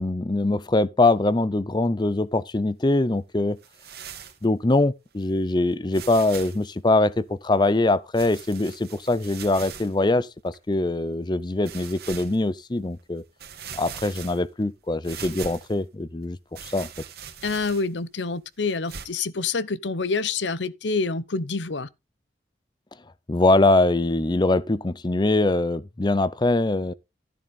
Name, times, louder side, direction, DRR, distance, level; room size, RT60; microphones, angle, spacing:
voice 1, 0.0-3.6 4.4-13.2 13.7-16.9 23.3-26.9, left 2 dB, 25° left, 0.5 m, -23 dB
sound 1, 3.6-4.4 5.2-5.3 5.9-6.7 8.1-9.9 10.5-10.6 11.6-12.4 13.0-13.1 13.4-14.6 15.0-15.8 16.5-18.0 18.9-19.1, right 7 dB, 60° right, 2.5 m, -40 dB
voice 2, 17.4-21.9, left 4 dB, 80° left, 0.8 m, -27 dB
13.0 x 7.2 x 4.1 m
head